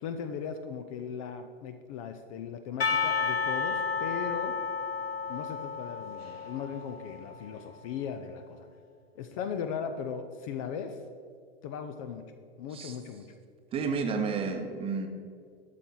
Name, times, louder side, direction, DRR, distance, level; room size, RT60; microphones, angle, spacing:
voice 1, 0.0-4.5 5.3-8.7 9.2-11.0 11.6-13.3, left 7 dB, 35° left, 8 dB, 0.6 m, -38 dB
Percussion / Church bell, 2.8-7.6, left 5 dB, 75° left, 1.0 m, -32 dB
voice 2, 13.7-15.1, right 5 dB, 20° right, 5 dB, 0.9 m, -31 dB
12.0 x 6.8 x 3.8 m, 2.2 s
figure-of-eight pair, 100°, 31 cm